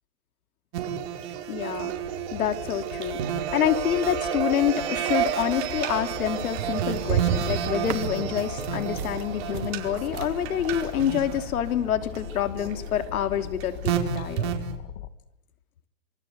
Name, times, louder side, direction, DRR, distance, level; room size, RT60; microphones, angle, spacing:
sound 1, 0.7-14.7, right 9 dB, 45° right, 4.8 m, -30 dB
sound 2, 1.4-15.1, left 9 dB, 50° left, 2.6 m, -40 dB
voice 1, 1.5-1.9 2.3-14.5, left 10 dB, 75° left, 8 dB, 3.4 m, -27 dB
sound 3, 6.5-11.5, right 9 dB, 90° right, 2.3 m, -40 dB
27.5 x 24.5 x 8.1 m, 0.80 s
hypercardioid pair, 150°, 43 cm